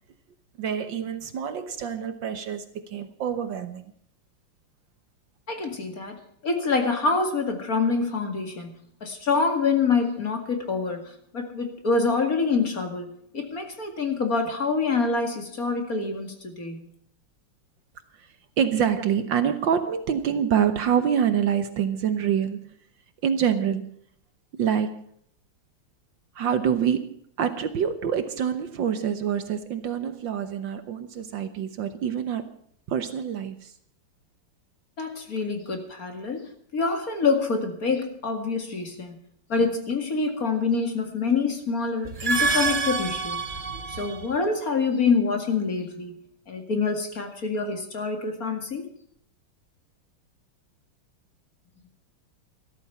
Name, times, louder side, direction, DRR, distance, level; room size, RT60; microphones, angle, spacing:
voice 1, 0.6-3.9 18.2-18.3 18.6-22.7 23.2-23.9 24.6-25.0 26.3-32.6 32.9-33.7, right 8 dB, 65° right, 10 dB, 1.6 m, -26 dB
voice 2, 5.5-8.7 9.0-11.0 11.3-16.9 35.0-39.2 39.5-43.4 44.0-46.2 46.5-48.9, left 4 dB, 40° left, 5 dB, 2.4 m, -26 dB
sound 1, 42.0-44.3, right 4 dB, 35° right, 0.8 m, -27 dB
14.0 x 13.5 x 5.7 m, 0.64 s
omnidirectional pair, 2.4 m